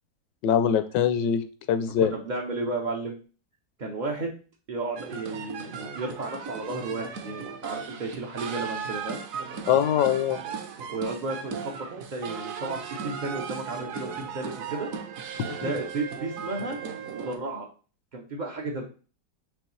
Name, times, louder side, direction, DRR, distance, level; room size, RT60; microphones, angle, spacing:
voice 1, 0.4-1.4 1.7-2.1 9.7-10.4 15.4-15.7, left 9 dB, 80° left, 10 dB, 1.2 m, -23 dB
voice 2, 1.8-3.2 3.8-4.3 4.7-9.2 10.9-14.9 15.6-16.8 17.1-17.7 18.1-18.9, right 2 dB, 80° right, -1 dB, 0.4 m, -33 dB
sound 1, 4.9-17.4, right 6 dB, 65° right, 0.9 m, -37 dB
5.4 x 3.0 x 3.1 m, 0.36 s
omnidirectional pair, 1.9 m